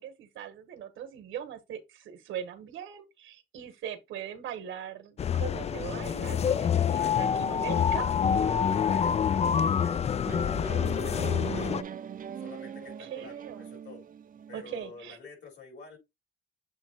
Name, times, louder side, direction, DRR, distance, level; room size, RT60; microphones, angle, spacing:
voice 1, 0.0-8.1 13.0-13.7 14.5-15.2, right 9 dB, 80° right, 1.4 m, -40 dB
sound 1, 5.2-11.8, left 7 dB, 35° left, 0.3 m, -27 dB
voice 2, 6.7-7.1 8.1-12.0 12.4-13.4 13.7-14.0 14.5-16.0, left 4 dB, 65° left, 4.3 m, -48 dB
sound 2, 10.2-14.9, right 8 dB, 45° right, 0.6 m, -40 dB
7.4 x 2.9 x 4.4 m
cardioid pair, 90°, 20 cm